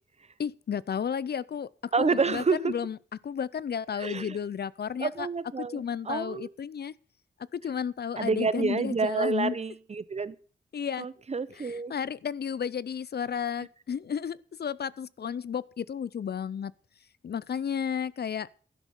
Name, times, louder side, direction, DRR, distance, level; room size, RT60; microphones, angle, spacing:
voice 1, 0.4-3.0 3.2-5.3 5.6-6.9 7.5-9.6 10.7-11.1 11.5-16.7 17.2-18.5, left 7 dB, 60° left, 0.5 m, -33 dB
voice 2, 1.9-2.7 3.9-4.4 5.0-6.5 8.2-10.3 11.0-11.9, right 4 dB, 35° right, 0.7 m, -29 dB
12.0 x 10.5 x 5.3 m
wide cardioid pair, 155°, 19 cm